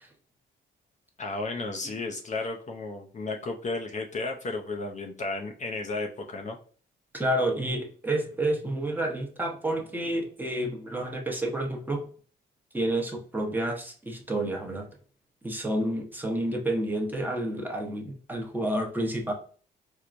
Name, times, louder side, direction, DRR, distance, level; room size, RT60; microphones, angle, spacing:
voice 1, 1.2-6.6, left 3 dB, 35° left, 2 dB, 0.5 m, -33 dB
voice 2, 7.1-12.0 12.7-14.9 15.4-19.3, right 1 dB, 10° right, 1 dB, 0.9 m, -29 dB
4.5 x 2.1 x 2.5 m, 0.42 s
cardioid pair, 90°, 20 cm